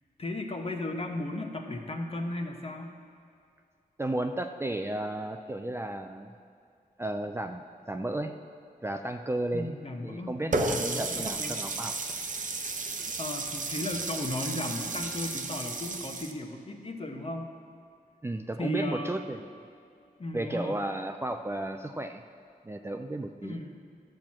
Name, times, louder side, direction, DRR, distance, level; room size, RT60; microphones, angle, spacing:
voice 1, 0.2-2.9 9.5-11.6 13.2-17.5 18.6-19.2 20.2-20.8 23.4-23.7, left 1 dB, 40° left, 3 dB, 1.1 m, -35 dB
voice 2, 4.0-6.3 7.0-8.3 8.8-9.8 10.0-12.0 18.2-19.4 20.3-22.2 22.6-23.6, right 1 dB, 15° right, 5 dB, 0.4 m, -33 dB
Water tap faucet, 10.5-16.3, right 3 dB, 55° right, 0.8 m, -33 dB
13.5 x 4.5 x 7.3 m, 2.5 s
wide cardioid pair, 80°, 16 cm